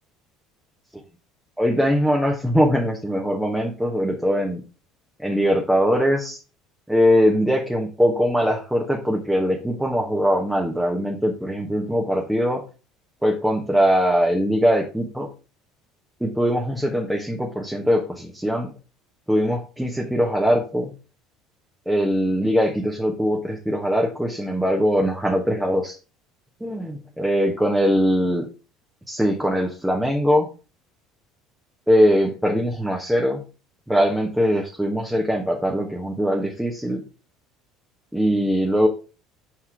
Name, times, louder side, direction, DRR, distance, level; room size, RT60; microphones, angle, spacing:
voice 1, 1.6-4.6 5.2-6.4 6.9-12.6 13.2-15.3 16.2-18.7 19.3-20.9 21.9-26.0 26.6-28.4 29.1-30.5 31.9-33.4 33.9-37.0 38.1-38.9, equal, 5° right, 0 dB, 1.2 m, -21 dB
5.6 x 4.6 x 4.7 m, 0.34 s
figure-of-eight pair, 65°, 0 cm